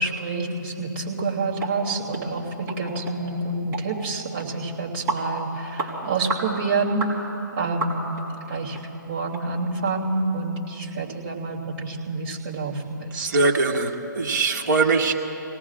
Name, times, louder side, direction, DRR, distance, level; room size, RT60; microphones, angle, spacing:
voice 1, 0.0-7.1 7.5-8.0 8.5-8.8 9.1-13.3, right 3 dB, 35° right, -4 dB, 3.0 m, -28 dB
sound 1, 1.6-1.8 2.1-2.2 2.7-2.8 3.1-3.2 3.7-3.9 4.4-4.5 5.1-5.3 5.8-5.9 6.3-6.5 7.0-7.2 7.8-8.2 8.7-8.8 9.3-9.4 9.9-10.0, right 3 dB, 20° right, 3.2 m, -29 dB
voice 2, 13.1-15.1, right 3 dB, 60° right, 0 dB, 1.9 m, -22 dB
29.5 x 18.5 x 2.5 m, 2.9 s
figure-of-eight pair, 140°, 11 cm